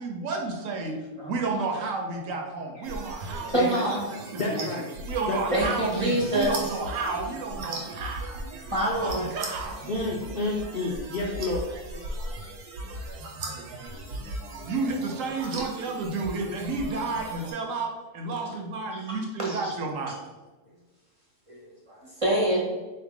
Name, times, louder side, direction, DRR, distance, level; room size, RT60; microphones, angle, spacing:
voice 1, 0.0-1.0 1.2-4.0 4.3-4.7 5.1-8.4 9.0-9.8 14.6-20.2, right 3 dB, 70° right, 2 dB, 0.9 m, -31 dB
sound 1, 2.8-17.5, right 2 dB, 90° right, 1.3 m, -38 dB
voice 2, 3.5-4.0 5.5-6.8 8.7-9.3 13.9-14.0 14.3-14.4 18.9-19.7 21.5-22.6, right 1 dB, 40° right, -3 dB, 0.5 m, -27 dB
voice 3, 4.4-4.8 5.3-5.6 9.9-11.7, left 2 dB, 70° left, -2 dB, 0.5 m, -29 dB
3.7 x 2.8 x 3.6 m, 1.2 s
omnidirectional pair, 1.6 m